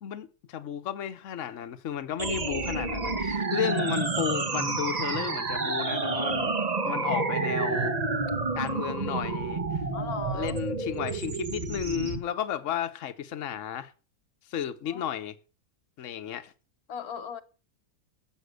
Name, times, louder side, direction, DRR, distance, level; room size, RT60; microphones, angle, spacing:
voice 1, 0.0-6.5 6.8-7.9 8.5-9.8 10.3-13.9 14.5-15.3 16.0-16.5, left 9 dB, 60° left, 1.3 m, -33 dB
sound 1, 2.2-12.2, right 3 dB, 30° right, 1.0 m, -29 dB
voice 2, 9.9-10.6 14.9-15.1 16.9-17.4, left 6 dB, 80° left, 1.4 m, -38 dB
13.0 x 7.8 x 6.6 m
omnidirectional pair, 1.6 m